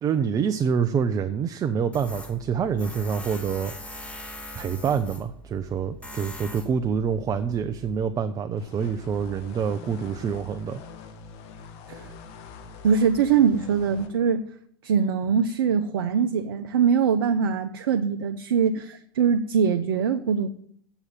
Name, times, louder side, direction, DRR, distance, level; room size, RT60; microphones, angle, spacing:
voice 1, 0.0-3.7 4.6-10.8, right 6 dB, 30° right, 0.7 m, -26 dB
Tools, 1.9-8.1, left 1 dB, 10° left, 1.5 m, -42 dB
sound 1, 8.6-14.1, left 4 dB, 55° left, 1.6 m, -44 dB
voice 2, 12.8-14.5 14.8-20.5, right 6 dB, 75° right, 0.7 m, -22 dB
8.0 x 7.0 x 7.5 m
hypercardioid pair, 95°, 13 cm